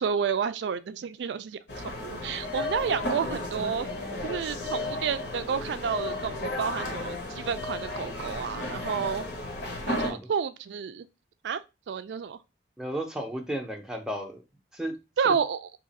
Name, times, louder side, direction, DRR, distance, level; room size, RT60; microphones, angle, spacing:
voice 1, 0.0-1.6 2.0-3.9 4.2-9.2 9.9-11.1 11.4-11.6 11.9-12.4 15.2-15.7, right 6 dB, 75° right, 0.3 m, -30 dB
sound 1, 1.7-10.1, left 2 dB, 65° left, 1.0 m, -34 dB
voice 2, 12.8-14.4 14.7-14.9, right 1 dB, 5° right, 0.5 m, -33 dB
2.9 x 2.4 x 4.0 m
head